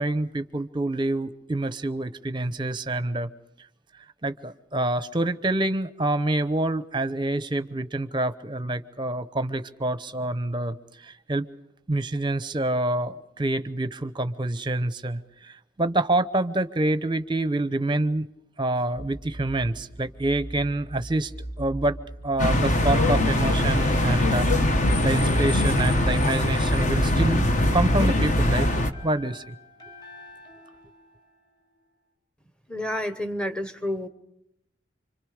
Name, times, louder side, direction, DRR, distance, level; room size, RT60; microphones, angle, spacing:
voice 1, 0.0-3.3 4.2-11.5 11.9-18.3 18.6-21.3 21.6-22.0 22.2-28.7 29.0-29.5, right 2 dB, 25° right, 13 dB, 0.9 m, -27 dB
sound 1, 18.9-28.4, right 1 dB, 70° left, 2.0 m, -34 dB
sound 2, 22.4-28.9, left 1 dB, 40° left, 1.3 m, -22 dB
sound 3, 25.9-31.9, left 4 dB, 20° left, 4.0 m, -48 dB
voice 2, 32.7-34.1, left 1 dB, 5° left, 9 dB, 1.2 m, -29 dB
26.5 x 25.5 x 5.1 m, 0.82 s
head